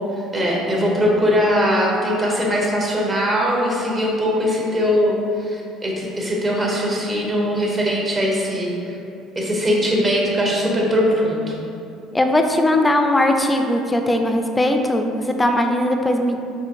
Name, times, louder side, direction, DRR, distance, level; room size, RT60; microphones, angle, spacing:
voice 1, 0.3-8.9 9.3-11.5, equal, 30° right, -3 dB, 0.8 m, -20 dB
voice 2, 12.1-16.4, left 1 dB, 15° left, 4 dB, 0.3 m, -19 dB
3.7 x 2.7 x 2.6 m, 2.6 s
hypercardioid pair, 70°, 0 cm